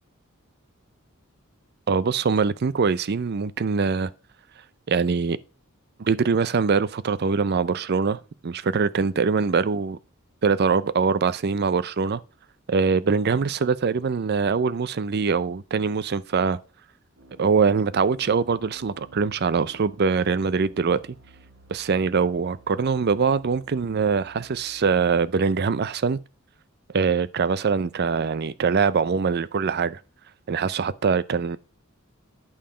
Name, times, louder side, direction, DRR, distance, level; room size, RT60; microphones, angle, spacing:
voice 1, 1.9-4.1 4.9-5.4 6.0-10.0 10.4-12.2 12.7-16.6 17.4-21.0 21.7-26.2 26.9-30.0 30.5-31.6, right 5 dB, 50° right, 0.5 m, -23 dB
sound 1, 17.2-25.0, right 1 dB, 85° right, 1.6 m, -52 dB
8.9 x 5.6 x 4.9 m
head